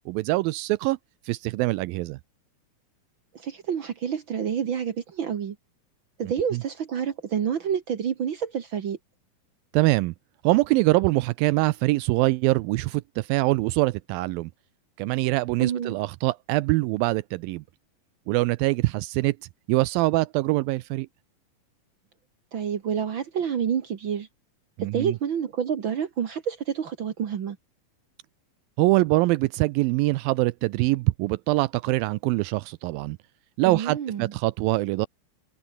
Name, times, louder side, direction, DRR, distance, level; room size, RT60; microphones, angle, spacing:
voice 1, 0.1-1.0 1.2-2.2 6.2-6.6 9.7-10.1 10.4-14.5 15.0-17.6 18.3-19.4 19.7-21.1 24.8-25.2 28.8-33.2 33.6-35.1, right 20 dB, 85° right, 2.3 m, -24 dB
voice 2, 3.3-5.6 6.2-9.0 15.6-16.0 22.5-24.3 24.8-27.6 33.6-34.3, right 8 dB, 65° right, 1.2 m, -28 dB
omnidirectional pair, 4.2 m